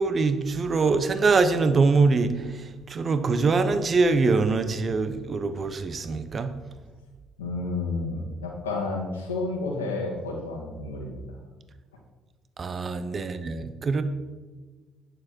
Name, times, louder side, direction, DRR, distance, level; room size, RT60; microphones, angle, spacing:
voice 1, 0.0-2.3 2.9-6.5 12.6-14.0, right 4 dB, 40° right, 10 dB, 1.1 m, -23 dB
voice 2, 7.4-11.2, left 3 dB, 80° left, 0 dB, 2.0 m, -31 dB
11.5 x 9.9 x 4.6 m, 1.3 s
figure-of-eight pair, 50°, 0 cm